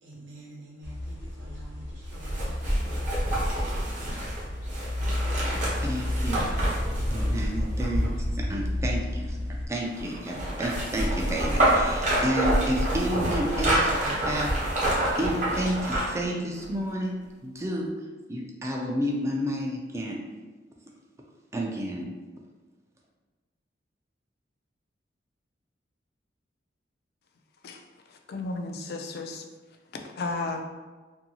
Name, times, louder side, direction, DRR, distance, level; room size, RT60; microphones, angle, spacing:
voice 1, 0.0-3.2, right 1 dB, 80° right, -5 dB, 0.9 m, -48 dB
sound 1, 0.8-9.7, left 1 dB, 75° left, 0.8 m, -31 dB
sound 2, 2.1-8.3 9.9-16.2 16.6-16.7, right 1 dB, 40° right, 0.8 m, -27 dB
voice 2, 5.8-6.5 7.1-8.1 8.3-9.4 9.7-14.8 15.2-17.1 17.4-17.9 18.3-20.2 21.5-22.1, equal, 15° right, -1 dB, 0.4 m, -30 dB
voice 3, 28.1-29.4 30.2-30.6, left 3 dB, 60° left, 3 dB, 0.3 m, -33 dB
2.7 x 2.6 x 2.7 m, 1.3 s
head